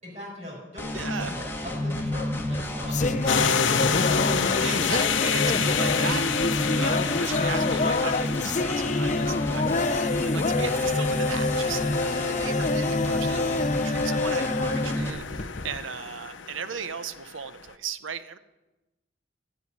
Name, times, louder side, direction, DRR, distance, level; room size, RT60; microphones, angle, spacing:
voice 1, 0.0-3.1, left 1 dB, 35° right, -4 dB, 5.3 m, -40 dB
sound 1, 0.8-15.1, left 1 dB, 10° left, 1.5 m, -30 dB
voice 2, 0.9-1.3 4.5-18.4, right 6 dB, 85° right, 13 dB, 0.7 m, -37 dB
sound 2, 2.4-15.8, left 3 dB, 40° left, 0.6 m, -27 dB
sound 3, 3.3-17.4, left 7 dB, 80° left, 0.8 m, -30 dB
12.0 x 9.3 x 9.9 m, 1.1 s
head